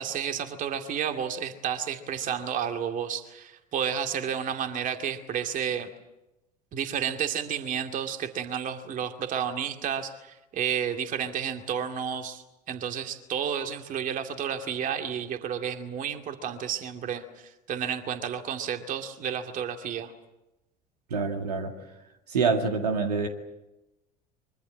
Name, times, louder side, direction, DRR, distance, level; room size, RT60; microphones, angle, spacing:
voice 1, 0.0-5.9 6.7-20.1, right 8 dB, 40° right, 2.4 m, -31 dB
voice 2, 21.1-21.7 22.3-23.3, right 4 dB, 75° right, 2.1 m, -26 dB
24.0 x 24.0 x 7.6 m
figure-of-eight pair, 65°, 21 cm